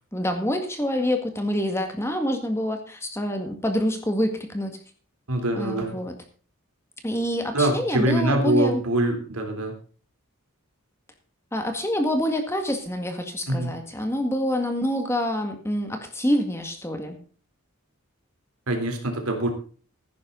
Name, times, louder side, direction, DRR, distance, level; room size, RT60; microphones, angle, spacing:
voice 1, 0.1-4.8 5.5-6.1 7.0-8.8 11.5-17.2, equal, 10° left, 5 dB, 1.9 m, -26 dB
voice 2, 5.3-6.0 7.5-9.7 13.5-13.7 18.7-19.5, right 1 dB, 90° right, 4 dB, 3.5 m, -24 dB
15.5 x 10.5 x 3.9 m, 0.40 s
head